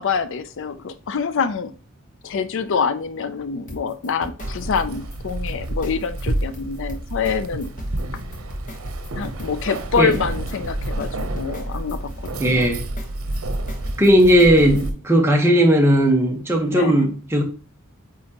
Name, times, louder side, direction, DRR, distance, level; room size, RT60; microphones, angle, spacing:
voice 1, 0.0-1.7 2.2-7.7 9.2-12.7 16.7-17.0, left 6 dB, 60° left, 0.4 m, -26 dB
sound 1, 3.7-14.9, equal, 40° left, 1.4 m, -38 dB
Keys jangling, 4.4-14.9, right 1 dB, 90° right, 0.8 m, -29 dB
voice 2, 12.4-12.8 14.0-17.4, equal, 10° right, 1.2 m, -16 dB
8.5 x 3.7 x 3.0 m
head